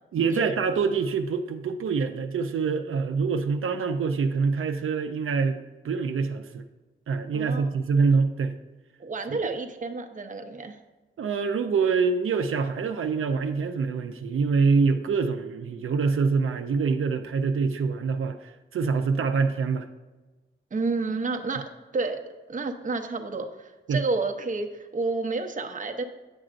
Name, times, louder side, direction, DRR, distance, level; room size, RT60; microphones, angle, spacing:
voice 1, 0.1-5.6 5.8-6.7 7.1-8.5 9.3-9.4 11.2-19.9 23.9-24.0, right 5 dB, 80° right, 6 dB, 0.5 m, -25 dB
voice 2, 7.3-7.7 9.0-10.8 20.7-22.2 22.5-26.0, right 3 dB, 40° right, 5 dB, 0.6 m, -30 dB
9.6 x 7.5 x 2.5 m, 1.2 s
wide cardioid pair, 130°, 21 cm